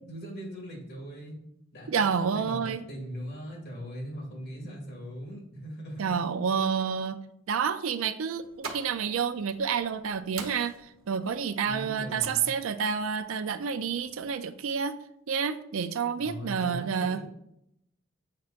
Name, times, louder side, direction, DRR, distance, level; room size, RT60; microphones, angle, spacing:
voice 1, 0.0-1.3 1.7-6.2 11.6-12.5 16.2-17.3, equal, 50° left, -2 dB, 2.2 m, -40 dB
voice 2, 1.9-2.8 6.0-7.2 7.5-10.7 11.1-15.0 15.3-17.2, right 6 dB, 70° right, 11 dB, 0.4 m, -29 dB
sound 1, 8.3-14.3, right 5 dB, 90° right, 0.9 m, -46 dB
7.4 x 5.8 x 2.5 m, 0.78 s
head